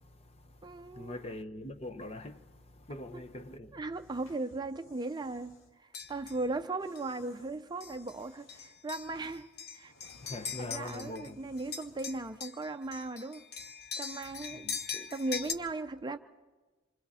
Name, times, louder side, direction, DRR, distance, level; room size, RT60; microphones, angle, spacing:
voice 1, 0.0-3.8 10.2-11.4 14.5-14.8, left 1 dB, 30° left, 0.8 m, -43 dB
voice 2, 0.6-1.2 3.1-3.3 3.7-9.9 10.3-13.5 14.0-16.2, right 2 dB, 20° right, 0.5 m, -38 dB
sound 1, 3.9-5.7 6.8-8.9 9.3-12.2, left 2 dB, 80° left, 1.9 m, -61 dB
sound 2, 5.9-6.4 7.0-7.1 7.8-8.1 8.5-11.3 11.6-15.5, left 7 dB, 55° left, 1.1 m, -41 dB
27.0 x 24.0 x 4.2 m
head